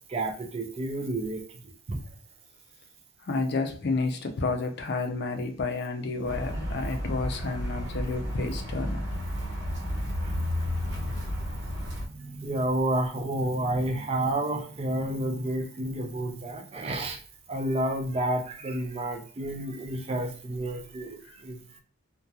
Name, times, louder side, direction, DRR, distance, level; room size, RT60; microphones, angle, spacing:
voice 1, 0.1-1.4 1.9-2.0 9.3-9.4 10.2-10.4 10.9-11.5 12.1-17.2 17.5-21.8, right 1 dB, 30° right, 3 dB, 0.4 m, -30 dB
voice 2, 3.2-9.0 21.2-21.4, left 3 dB, 50° left, 5 dB, 0.4 m, -30 dB
sound 1, 6.2-12.1, equal, 55° right, 0.9 m, -32 dB
2.8 x 2.2 x 2.3 m, 0.41 s
head